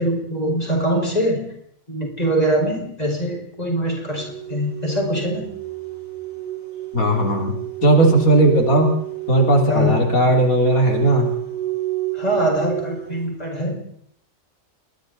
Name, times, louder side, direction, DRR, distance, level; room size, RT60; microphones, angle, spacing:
voice 1, 0.0-1.5 1.9-5.5 9.7-10.0 12.1-13.8, equal, 30° left, 0 dB, 5.5 m, -23 dB
sound 1, 4.1-13.2, right 15 dB, 70° right, 5.6 m, -29 dB
voice 2, 6.9-8.9 9.3-11.3, right 1 dB, 85° left, 2 dB, 3.9 m, -17 dB
29.5 x 22.0 x 4.1 m, 0.68 s
omnidirectional pair, 1.4 m